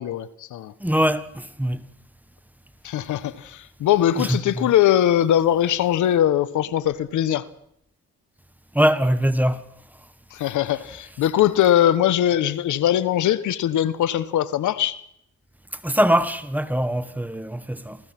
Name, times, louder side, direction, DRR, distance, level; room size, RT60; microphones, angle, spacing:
voice 1, 0.0-0.7 2.8-7.4 10.3-15.0, left 11 dB, 75° left, 1.1 m, -21 dB
voice 2, 0.8-1.9 4.1-4.7 8.7-9.7 15.8-18.0, equal, 5° right, 1.3 m, -22 dB
29.0 x 15.5 x 6.0 m
cardioid pair, 90°, 30 cm